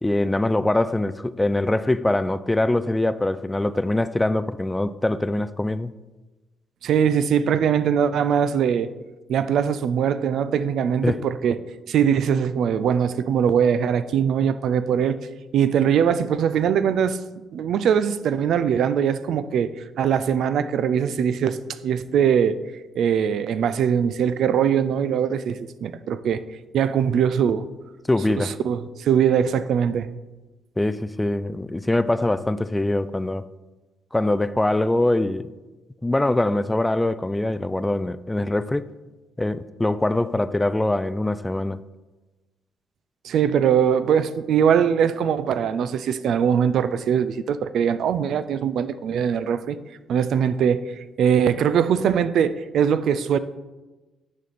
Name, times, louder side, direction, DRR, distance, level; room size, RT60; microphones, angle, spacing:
voice 1, 0.0-5.9 11.0-11.2 28.1-28.5 30.8-33.4 34.1-35.5 36.0-38.9 39.4-41.8, left 1 dB, 10° left, 0.3 m, -23 dB
voice 2, 6.8-8.9 9.3-11.6 11.9-15.2 15.5-17.2 17.5-19.7 20.0-21.6 21.8-22.6 23.0-26.4 26.7-27.7 28.4-30.1 43.2-49.8 50.1-50.8 51.2-53.4, right 8 dB, 70° right, 0.4 m, -21 dB
9.4 x 5.1 x 4.1 m
cardioid pair, 90°, 0 cm